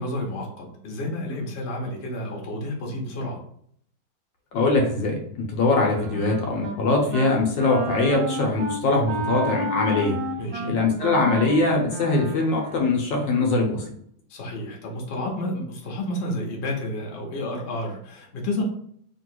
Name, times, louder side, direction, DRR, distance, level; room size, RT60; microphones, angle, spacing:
voice 1, 0.0-3.4 10.4-10.8 14.3-18.6, left 1 dB, 45° left, -1 dB, 1.0 m, -30 dB
voice 2, 4.5-10.2 10.7-13.9, left 3 dB, 70° left, 0 dB, 1.4 m, -22 dB
Wind instrument woodwind instrument, 5.7-6.8 7.1-7.3 7.6-12.9, right 2 dB, 70° right, 0.9 m, -31 dB
3.0 x 2.9 x 4.5 m, 0.65 s
omnidirectional pair, 2.2 m